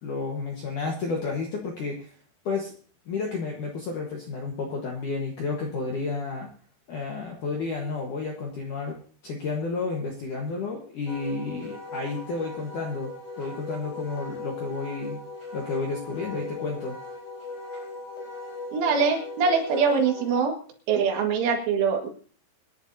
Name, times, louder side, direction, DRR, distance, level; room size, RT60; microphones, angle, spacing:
voice 1, 0.0-2.1 2.5-2.7 3.1-6.5 6.9-9.0 9.2-13.1 13.4-15.2 15.5-17.0, left 4 dB, 65° left, 0 dB, 2.0 m, -31 dB
Wind instrument woodwind instrument, 11.1-20.4, left 2 dB, 40° left, 5.1 m, -38 dB
voice 2, 18.7-20.5 20.9-22.1, right 5 dB, 75° right, 2 dB, 4.3 m, -23 dB
25.0 x 10.5 x 2.8 m, 0.43 s
omnidirectional pair, 5.7 m